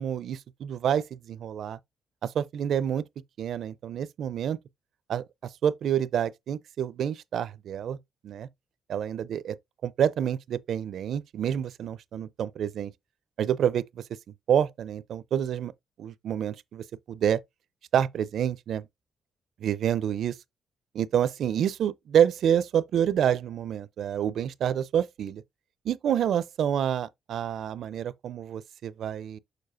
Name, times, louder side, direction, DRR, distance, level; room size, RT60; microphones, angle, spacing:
voice 1, 0.0-1.8 2.2-3.0 3.4-4.6 5.1-5.2 5.6-8.0 8.2-8.5 8.9-9.6 9.8-12.9 13.4-14.0 14.5-15.7 16.0-17.4 17.9-18.9 19.6-20.4 21.0-25.4 25.9-29.4, right 9 dB, 65° right, 0.4 m, -28 dB
6.8 x 6.1 x 2.5 m
cardioid pair, 145°, 0 cm